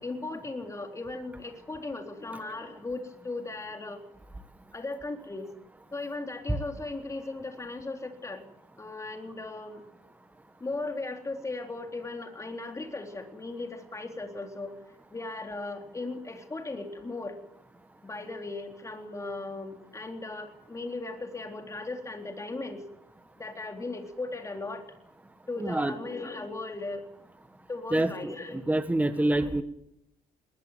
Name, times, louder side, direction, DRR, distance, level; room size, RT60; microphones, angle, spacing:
voice 1, 0.0-4.0 4.7-5.5 5.9-8.4 8.8-9.8 10.6-14.8 15.1-17.4 18.0-22.9 23.4-24.9 25.5-27.1 27.7-28.7 29.4-29.6, left 2 dB, 20° left, 4 dB, 3.8 m, -37 dB
voice 2, 25.6-25.9 27.9-29.6, right 1 dB, 10° right, 10 dB, 1.6 m, -27 dB
20.5 x 20.0 x 9.3 m, 0.79 s
cardioid pair, 110°, 17 cm